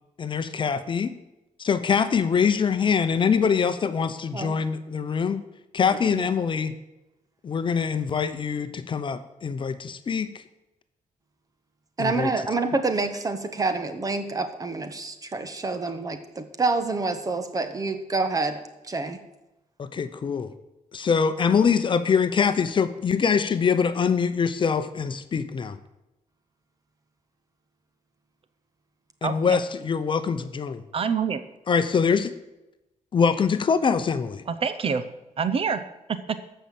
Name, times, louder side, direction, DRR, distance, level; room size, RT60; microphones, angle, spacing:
voice 1, 0.2-1.1 1.6-5.4 5.7-6.8 7.4-10.4 12.0-12.3 19.8-20.5 20.9-25.8 29.2-30.8 31.7-32.3 33.1-34.4, left 6 dB, 40° left, 10 dB, 0.8 m, -24 dB
voice 2, 12.0-18.6 18.9-19.2, right 3 dB, 25° right, 9 dB, 1.2 m, -27 dB
voice 3, 29.2-29.6 30.9-31.4 34.5-35.0 35.4-35.8 36.1-36.5, right 6 dB, 45° right, 12 dB, 0.7 m, -26 dB
14.0 x 5.7 x 7.6 m, 0.95 s
wide cardioid pair, 145°, 13 cm